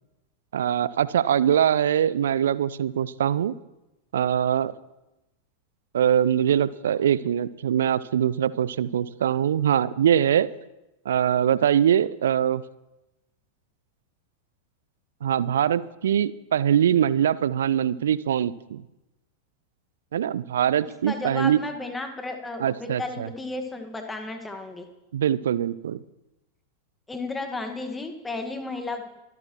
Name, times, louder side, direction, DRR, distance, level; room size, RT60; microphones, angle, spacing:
voice 1, 0.5-3.5 4.1-4.7 5.9-10.5 11.1-12.6 15.2-18.8 20.1-21.6 22.6-23.3 25.1-26.0, right 9 dB, 65° right, 19 dB, 0.6 m, -23 dB
voice 2, 21.1-24.9 27.1-29.0, left 2 dB, 10° left, 5 dB, 1.8 m, -33 dB
24.5 x 13.5 x 3.1 m, 0.97 s
figure-of-eight pair, 90°, 0 cm